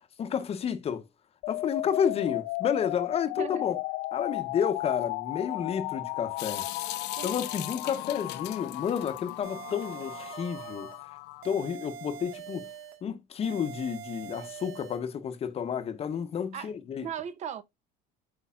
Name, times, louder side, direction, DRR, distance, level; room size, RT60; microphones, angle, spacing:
voice 1, 0.2-1.0 1.5-3.8 4.1-6.7 7.2-10.9 11.4-12.7 13.0-17.1, left 7 dB, 35° left, 0.8 m, -31 dB
sound 1, 1.4-11.4, left 20 dB, 90° left, 0.4 m, -35 dB
Water tap faucet / Sink (filling or washing) / Drip, 6.4-10.5, left 14 dB, 65° left, 0.8 m, -40 dB
sound 2, 9.4-11.0 11.4-13.0 13.4-15.0, right 8 dB, 85° right, 1.6 m, -44 dB
voice 2, 17.0-17.6, right 9 dB, 40° right, 0.6 m, -37 dB
8.5 x 4.8 x 2.4 m
cardioid pair, 150°, 19 cm